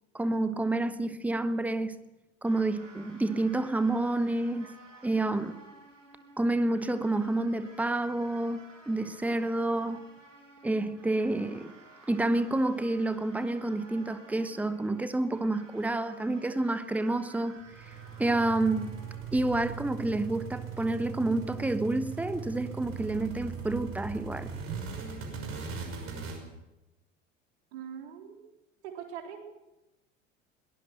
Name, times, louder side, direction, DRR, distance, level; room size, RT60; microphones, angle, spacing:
voice 1, 0.1-2.0 2.4-4.7 5.0-5.6 6.4-8.6 8.9-10.0 10.6-11.7 12.1-17.9 18.2-19.0 19.3-24.5, right 2 dB, 5° right, 1.1 m, -29 dB
sound 1, 2.5-19.2, right 2 dB, 80° right, 6.4 m, -54 dB
sound 2, 17.6-26.4, right 6 dB, 35° right, 5.8 m, -39 dB
voice 2, 27.7-28.5 28.8-29.4, right 8 dB, 60° right, 3.9 m, -42 dB
22.0 x 18.5 x 6.5 m
figure-of-eight pair, 75°, 38 cm